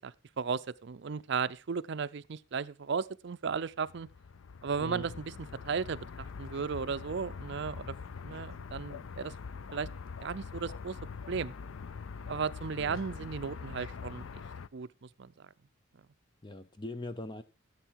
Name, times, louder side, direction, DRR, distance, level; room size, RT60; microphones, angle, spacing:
voice 1, 0.0-4.1 4.6-5.3 5.6-7.9 8.2-9.3 9.7-9.9 10.2-11.0 11.3-11.5 12.3-14.4 14.7-15.3, right 5 dB, 55° right, 0.5 m, -35 dB
sound 1, 3.7-14.7, left 5 dB, 75° left, 0.5 m, -44 dB
voice 2, 16.4-17.4, left 2 dB, 20° left, 0.6 m, -41 dB
14.0 x 8.1 x 4.6 m
head